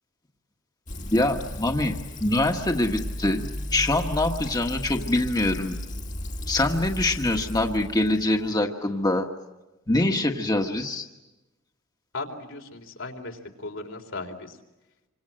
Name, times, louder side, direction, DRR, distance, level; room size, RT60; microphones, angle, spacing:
Fill (with liquid), 0.9-8.5, left 1 dB, 40° left, 1.8 m, -35 dB
voice 1, 1.1-1.9 2.2-3.4 3.7-5.8 6.5-9.3 9.9-11.0, left 2 dB, 20° left, 3 dB, 1.5 m, -24 dB
voice 2, 12.1-14.6, left 3 dB, 75° left, 3 dB, 4.0 m, -37 dB
27.5 x 25.5 x 7.6 m, 1.0 s
head